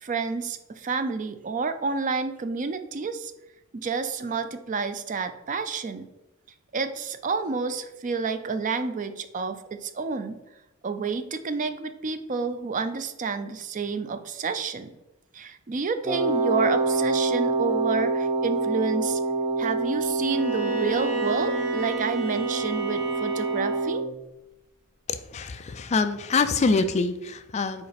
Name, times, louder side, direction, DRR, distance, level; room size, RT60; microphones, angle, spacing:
voice 1, 0.0-3.3 3.7-6.1 6.7-10.4 10.8-14.9 15.3-19.2 19.6-24.0, right 4 dB, 35° right, 9 dB, 0.4 m, -29 dB
Wind instrument woodwind instrument, 16.1-24.1, right 3 dB, 15° right, 0.9 m, -26 dB
Bowed string instrument, 20.2-24.0, right 1 dB, 75° right, 1.2 m, -33 dB
voice 2, 25.1-27.9, left 4 dB, 30° left, 11 dB, 0.3 m, -25 dB
4.8 x 4.2 x 5.0 m, 0.96 s
head